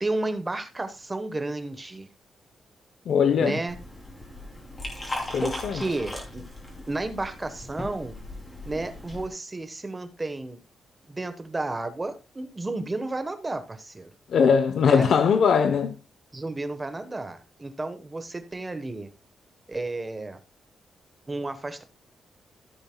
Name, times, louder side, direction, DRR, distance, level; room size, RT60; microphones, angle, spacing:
voice 1, 0.0-2.1 3.4-3.8 5.4-6.4 6.9-8.2 8.6-10.6 11.1-14.1 14.8-15.1 16.3-19.1 19.7-20.4 21.3-21.8, right 2 dB, 15° right, 1.1 m, -32 dB
voice 2, 3.1-3.6 5.3-5.8 14.3-15.9, left 6 dB, 60° left, 0.7 m, -21 dB
Liquid, 3.7-9.3, left 1 dB, 15° left, 2.9 m, -38 dB
14.5 x 8.1 x 2.2 m
wide cardioid pair, 170°, 0 cm